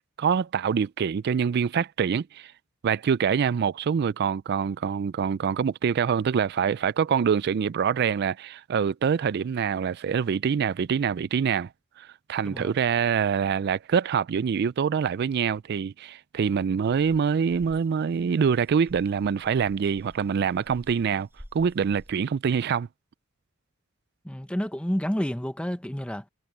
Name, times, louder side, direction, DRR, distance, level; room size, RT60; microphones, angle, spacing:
voice 1, 0.2-2.5 2.8-11.7 12.0-21.3 21.5-22.9, right 7 dB, 50° right, 0.3 m, -25 dB
sound 1, 16.8-22.1, equal, 10° right, 8.0 m, -51 dB
voice 2, 24.2-26.2, equal, 5° left, 0.9 m, -29 dB
head